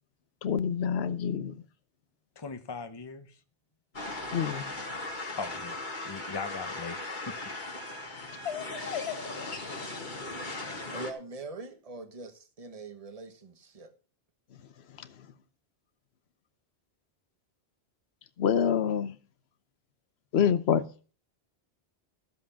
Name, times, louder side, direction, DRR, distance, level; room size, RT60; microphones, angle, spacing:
voice 1, 0.4-1.6 4.3-4.8 8.4-10.1 15.0-15.1 18.4-19.2 20.3-20.8, left 8 dB, 70° left, 1.1 m, -28 dB
voice 2, 2.4-3.4 5.4-7.4 7.9-8.3, left 5 dB, 25° left, 1.0 m, -40 dB
sound 1, 3.9-11.1, left 2 dB, 45° left, 1.9 m, -38 dB
voice 3, 10.9-13.9, right 3 dB, 35° right, 1.3 m, -42 dB
13.5 x 7.6 x 5.7 m
omnidirectional pair, 1.1 m